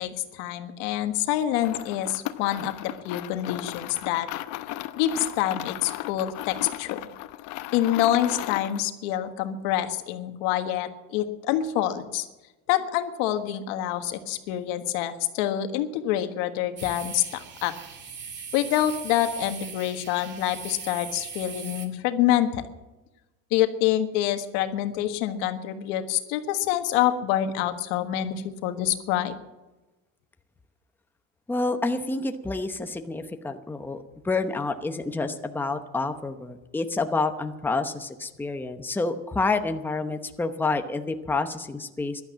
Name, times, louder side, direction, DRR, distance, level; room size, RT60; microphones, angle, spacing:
voice 1, 0.0-4.3 4.9-7.0 7.7-12.3 12.7-17.7 18.5-22.6 23.5-29.3, left 12 dB, 85° left, 8 dB, 1.6 m, -26 dB
sound 1, 1.5-8.9, left 15 dB, 60° left, 0.9 m, -36 dB
sound 2, 16.8-21.9, right 6 dB, 35° right, 2.2 m, -40 dB
voice 2, 31.5-42.2, left 3 dB, 5° left, 7 dB, 0.8 m, -28 dB
15.0 x 12.0 x 7.3 m, 1.1 s
cardioid pair, 145°, 33 cm